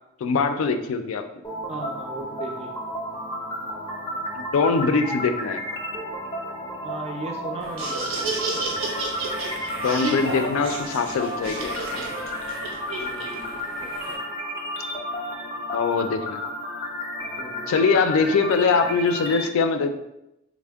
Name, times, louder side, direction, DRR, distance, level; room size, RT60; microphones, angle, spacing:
voice 1, 0.2-1.2 4.3-5.8 9.8-12.0 15.7-16.4 17.7-20.0, left 4 dB, 75° left, 7 dB, 0.3 m, -23 dB
sound 1, 1.4-19.4, left 1 dB, 20° left, 0.5 m, -32 dB
voice 2, 1.7-2.7 6.8-8.2 13.0-14.2 17.4-17.8, right 2 dB, 30° right, 3 dB, 0.4 m, -37 dB
Laughter, 7.6-14.2, right 2 dB, 70° right, 0.6 m, -31 dB
3.5 x 2.1 x 3.4 m, 0.87 s
head